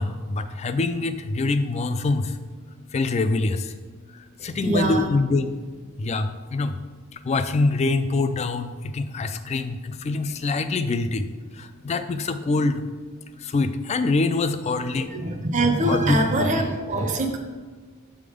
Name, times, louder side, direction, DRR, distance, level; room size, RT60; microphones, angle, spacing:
voice 1, 0.0-2.2 2.9-3.6 4.4-5.5 6.0-6.3 6.5-6.7 7.3-9.8 10.1-11.2 11.8-12.8 13.5-15.1 15.9-16.5, left 3 dB, 30° left, 10 dB, 0.3 m, -24 dB
voice 2, 4.6-5.1 15.0-17.4, right 1 dB, 35° right, 5 dB, 0.6 m, -23 dB
6.7 x 3.6 x 4.9 m, 1.4 s
head